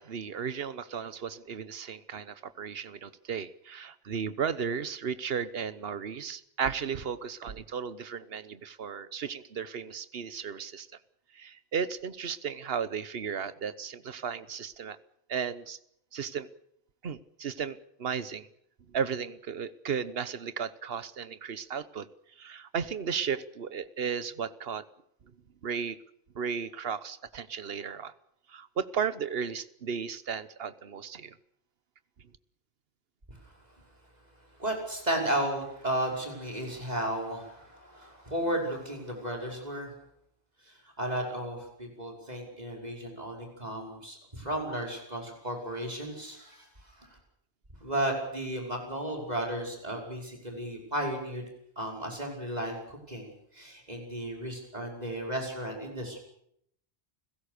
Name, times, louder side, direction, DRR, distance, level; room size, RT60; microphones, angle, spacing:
voice 1, 0.0-10.9 11.4-15.0 15.3-15.8 16.1-16.5 17.0-18.5 18.9-22.1 22.4-24.8 25.6-26.0 26.3-28.1 28.5-31.3, right 7 dB, 70° right, 15 dB, 1.3 m, -35 dB
voice 2, 33.3-33.8 34.6-39.9 40.6-47.2 47.8-51.4 51.8-56.2, right 1 dB, 40° right, 1 dB, 6.0 m, -34 dB
29.5 x 16.5 x 6.8 m, 0.72 s
omnidirectional pair, 1.1 m